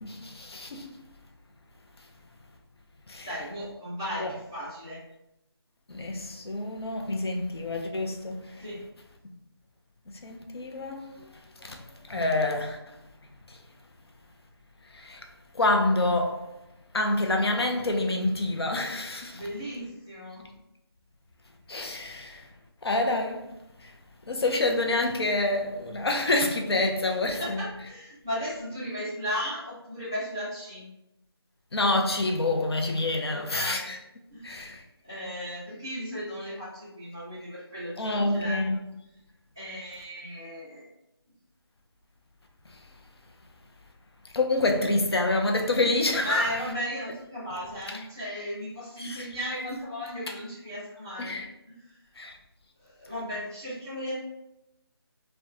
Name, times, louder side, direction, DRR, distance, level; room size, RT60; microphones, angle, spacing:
voice 1, 0.0-0.9 3.1-3.3 4.2-4.3 5.9-8.4 10.1-11.1 11.6-11.8 12.1-12.8 14.9-15.2 15.5-16.4 16.9-19.4 21.7-22.4 22.8-23.5 24.3-27.6 31.7-34.0 34.4-34.8 38.0-38.8 44.3-46.5 49.0-49.3 51.2-51.5 52.2-52.4, left 2 dB, 70° left, 0.5 m, -27 dB
voice 2, 3.2-5.0 8.6-8.8 19.3-20.4 27.4-30.8 33.2-33.9 34.3-34.7 35.0-38.7 39.5-40.8 46.2-51.4 51.9-52.0 52.8-54.1, equal, 10° right, 0.5 m, -35 dB
2.7 x 2.2 x 2.3 m
figure-of-eight pair, 170°, 14 cm